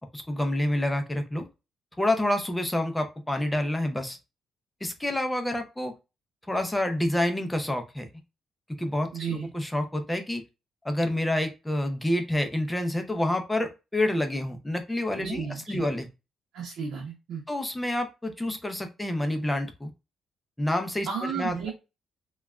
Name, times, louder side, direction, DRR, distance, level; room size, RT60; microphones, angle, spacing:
voice 1, 0.1-1.5 2.0-4.2 4.8-5.9 6.5-8.1 8.8-10.4 10.8-16.1 17.5-19.9 20.6-21.7, left 1 dB, 10° left, 5 dB, 0.5 m, -28 dB
voice 2, 9.1-9.5 15.2-15.9 16.5-17.4 21.1-21.7, right 6 dB, 75° right, -3 dB, 0.7 m, -33 dB
3.2 x 2.3 x 2.3 m, 0.27 s
cardioid pair, 115°, 0 cm